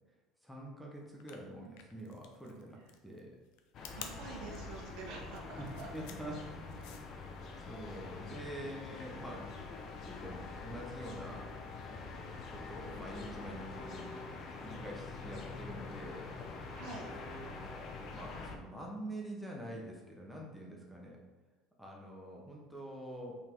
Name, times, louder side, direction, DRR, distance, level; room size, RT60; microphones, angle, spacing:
voice 1, 0.4-3.3 5.6-6.8 7.7-9.4 10.0-11.5 11.9-12.0 12.5-14.1 14.6-16.2 18.1-21.2 21.8-23.4, right 1 dB, ahead, -2 dB, 0.9 m, -46 dB
sound 1, 1.1-7.2, left 8 dB, 75° left, 0.7 m, -51 dB
sound 2, 3.7-18.6, left 3 dB, 40° left, 0.8 m, -45 dB
voice 2, 3.9-5.9 16.7-17.1, right 4 dB, 70° right, -2 dB, 1.5 m, -47 dB
5.5 x 4.1 x 4.5 m, 1.2 s
cardioid pair, 160°, 0 cm